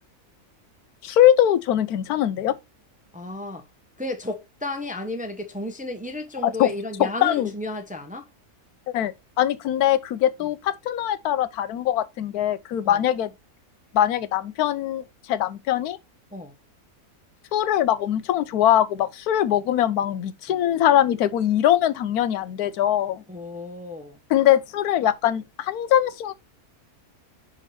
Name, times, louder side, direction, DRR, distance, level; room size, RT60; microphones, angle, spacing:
voice 1, 1.0-2.5 6.4-6.7 7.0-7.5 8.9-13.3 13.9-16.0 17.5-23.2 24.3-26.3, left 11 dB, 85° left, 1.2 m, -22 dB
voice 2, 3.1-3.6 4.0-8.3 12.8-13.0 16.3-16.5 20.5-20.6 23.3-24.2, left 2 dB, 10° right, 0.6 m, -33 dB
5.5 x 4.9 x 4.1 m
omnidirectional pair, 1.6 m